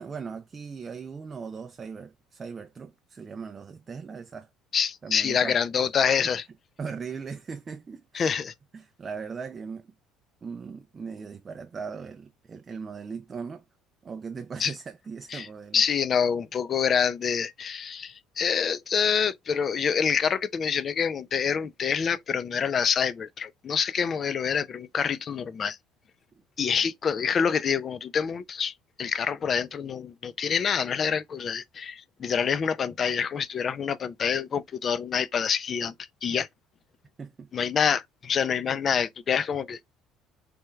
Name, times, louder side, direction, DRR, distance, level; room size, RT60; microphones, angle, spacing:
voice 1, 0.0-4.5 5.0-5.6 6.2-6.3 6.8-8.3 8.7-9.9 10.4-13.6 14.0-15.8 26.6-26.8 37.2-37.5, right 5 dB, 30° right, 0.3 m, -39 dB
voice 2, 4.7-6.4 8.1-8.5 14.6-14.7 15.3-15.5 15.7-25.8 26.6-28.7 29.0-35.9 36.2-36.5 37.5-39.8, left 7 dB, 40° left, 0.4 m, -26 dB
3.3 x 2.2 x 3.1 m
supercardioid pair, 95°, 0 cm